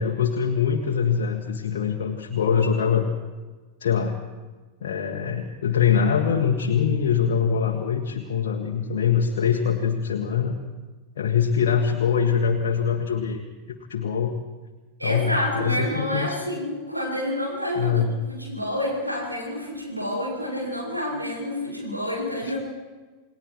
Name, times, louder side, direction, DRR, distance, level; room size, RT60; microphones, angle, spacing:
voice 1, 0.0-3.1 3.8-4.2 4.8-10.5 11.2-14.3 15.0-16.5 17.8-18.2 22.4-22.5, left 7 dB, 60° left, 1 dB, 1.7 m, -23 dB
voice 2, 15.0-18.0 18.3-22.6, left 1 dB, 85° right, -3 dB, 7.4 m, -28 dB
29.0 x 19.5 x 4.8 m, 1.3 s
figure-of-eight pair, 90°, 0 cm